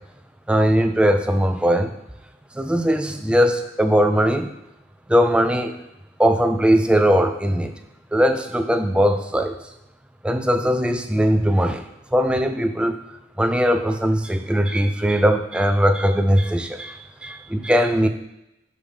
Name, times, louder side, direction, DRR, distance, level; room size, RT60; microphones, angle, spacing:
voice 1, 0.5-1.9 2.6-4.5 5.1-5.8 6.2-7.7 8.1-9.6 10.2-11.8 12.1-13.0 13.4-18.1, equal, 5° right, 6 dB, 0.4 m, -19 dB
5.4 x 5.1 x 5.0 m, 0.86 s
head